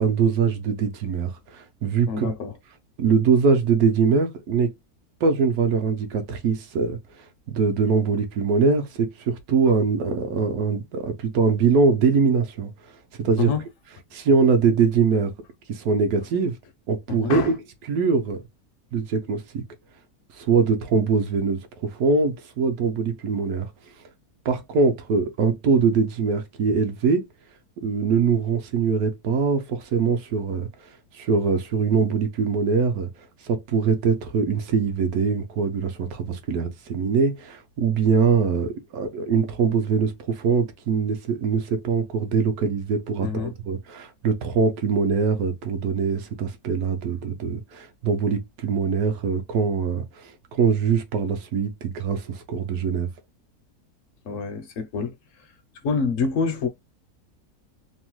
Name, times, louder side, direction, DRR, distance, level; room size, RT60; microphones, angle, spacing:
voice 1, 0.0-2.3 3.0-4.7 5.2-7.0 7.5-12.7 13.2-13.5 14.1-15.3 15.7-16.6 16.9-17.5 17.9-18.4 18.9-19.6 20.3-23.7 24.4-27.3 27.8-33.1 33.4-53.1, right 5 dB, 75° right, 1.0 m, -23 dB
voice 2, 2.1-2.6 13.4-13.6 17.1-17.5 43.2-43.5 54.2-55.1 55.8-56.7, left 5 dB, 65° left, 0.8 m, -26 dB
3.0 x 2.0 x 3.0 m
omnidirectional pair, 1.6 m